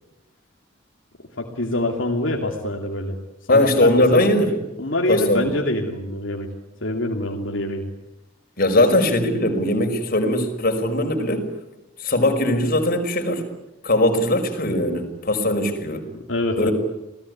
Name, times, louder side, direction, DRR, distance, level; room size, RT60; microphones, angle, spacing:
voice 1, 1.4-3.2 3.5-4.2 4.8-6.5 6.8-7.8 16.1-16.7, left 1 dB, 75° left, 1 dB, 2.9 m, -25 dB
voice 2, 3.5-4.5 5.1-5.5 8.6-11.5 12.0-13.5 13.8-16.1 16.6-16.7, left 1 dB, 50° left, 4 dB, 5.4 m, -20 dB
28.5 x 19.5 x 9.8 m, 0.93 s
head